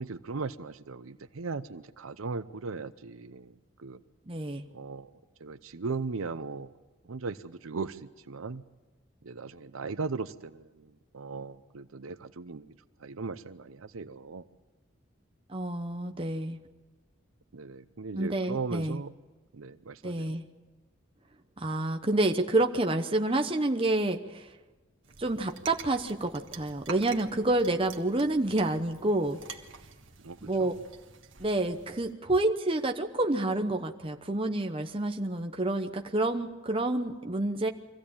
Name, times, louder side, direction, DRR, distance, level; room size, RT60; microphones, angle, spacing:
voice 1, 0.0-4.0 4.7-5.1 5.4-6.7 7.0-8.6 9.2-12.7 13.0-14.4 17.5-19.1 19.5-20.4 30.2-30.7, right 4 dB, 85° right, 12 dB, 0.7 m, -38 dB
voice 2, 4.3-4.7 15.5-16.6 18.1-19.0 20.0-20.5 21.6-24.5 25.2-29.4 30.4-30.7 31.4-37.7, right 2 dB, 25° right, 4 dB, 0.9 m, -28 dB
sound 1, 25.0-32.1, right 6 dB, 65° right, 1.5 m, -47 dB
24.0 x 15.5 x 8.7 m, 1.2 s
head